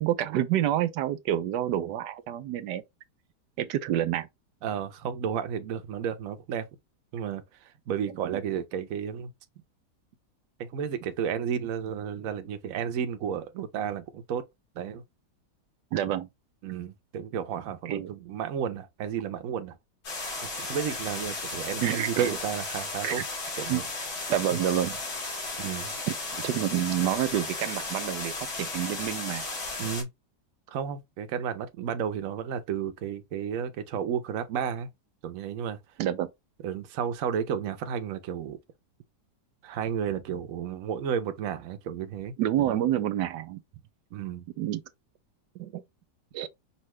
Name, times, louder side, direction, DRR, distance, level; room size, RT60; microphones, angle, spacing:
voice 1, 0.0-2.8 3.6-4.3 8.2-8.4 15.9-16.3 17.9-18.1 21.8-22.4 23.0-23.2 23.7-23.8 24.3-25.0 26.1-29.5 36.0-36.3 42.4-43.6 44.6-44.8 45.6-45.8 46.3-46.5, right 12 dB, 85° right, 1.2 m, -28 dB
voice 2, 4.6-6.6 7.1-7.4 7.9-9.3 10.6-14.5 14.8-15.0 16.6-19.7 20.4-23.2 23.6-23.8 25.6-25.9 29.8-30.1 30.7-34.9 35.2-35.8 36.6-38.6 39.6-42.3 42.6-42.8 44.1-44.4, right 8 dB, 60° right, 1.1 m, -32 dB
sound 1, 20.0-30.0, left 3 dB, 65° left, 2.5 m, -35 dB
5.6 x 2.6 x 3.1 m
omnidirectional pair, 1.8 m